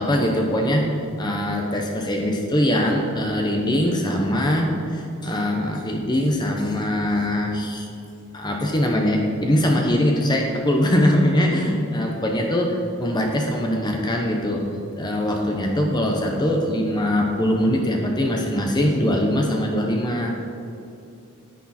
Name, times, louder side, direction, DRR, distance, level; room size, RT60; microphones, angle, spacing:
voice 1, 0.0-7.9 8.3-14.7 15.0-20.4, left 1 dB, 20° left, 1 dB, 0.8 m, -22 dB
10.0 x 9.9 x 4.3 m, 2.7 s
head